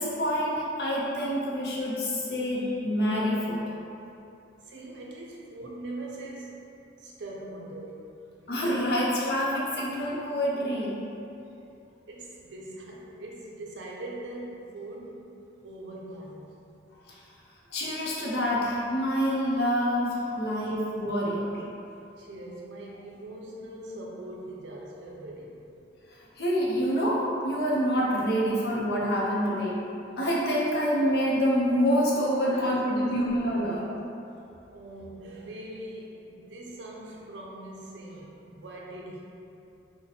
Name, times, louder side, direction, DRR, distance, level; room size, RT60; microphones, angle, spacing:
voice 1, 0.0-3.6 8.5-10.9 17.1-17.2 17.7-21.6 26.4-29.8 30.2-33.9, equal, 60° left, -5 dB, 0.6 m, -27 dB
voice 2, 4.6-6.6 7.0-8.2 12.1-15.3 15.6-16.6 22.2-25.7 32.5-33.8 34.7-39.2, right 1 dB, 75° right, -3 dB, 0.5 m, -42 dB
3.9 x 2.1 x 2.8 m, 2.8 s
head